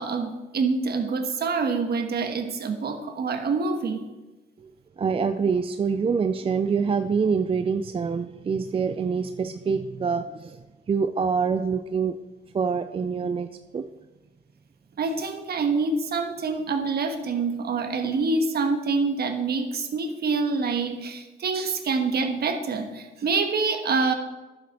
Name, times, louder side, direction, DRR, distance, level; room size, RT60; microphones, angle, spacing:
voice 1, 0.0-4.1 15.0-24.1, right 4 dB, 55° right, 6 dB, 1.3 m, -26 dB
voice 2, 5.0-10.6 10.9-12.1 12.5-13.5 13.7-13.9, right 5 dB, 30° right, 8 dB, 0.4 m, -25 dB
10.5 x 7.4 x 4.3 m, 1.1 s
cardioid pair, 90°, 20 cm